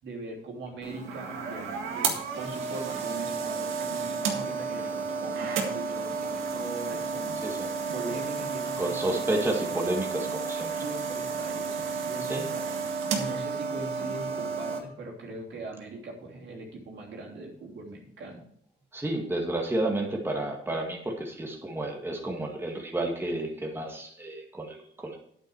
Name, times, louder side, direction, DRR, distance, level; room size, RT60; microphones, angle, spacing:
voice 1, 0.0-9.7 10.8-12.6 13.1-18.4, right 2 dB, 65° right, -1 dB, 3.1 m, -41 dB
sound 1, 0.8-14.8, right 5 dB, 90° right, 1.8 m, -32 dB
voice 2, 8.8-10.7 12.3-12.5 18.9-25.2, right 1 dB, 10° right, 0 dB, 1.9 m, -31 dB
9.0 x 8.8 x 4.6 m, 0.68 s
cardioid pair, 90°, 20 cm